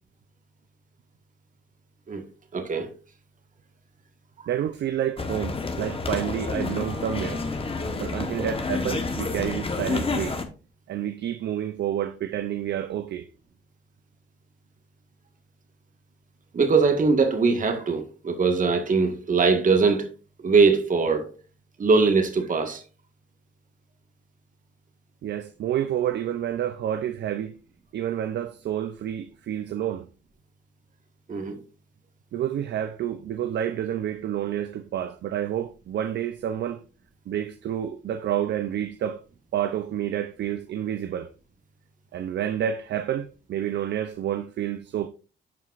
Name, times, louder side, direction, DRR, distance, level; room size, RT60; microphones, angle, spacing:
voice 1, 2.5-2.9 16.5-20.1 20.4-21.3 21.8-22.8 31.3-31.6, right 4 dB, 40° right, 1.6 m, -21 dB
voice 2, 4.5-7.4 8.0-10.4 10.9-13.3 25.2-27.5 27.9-30.1 32.3-36.8 37.3-39.2 39.5-41.3 42.1-45.1, right 10 dB, 60° right, 0.6 m, -29 dB
sound 1, 5.2-10.4, left 3 dB, 30° left, 1.2 m, -29 dB
12.0 x 4.6 x 2.5 m
cardioid pair, 90°, 20 cm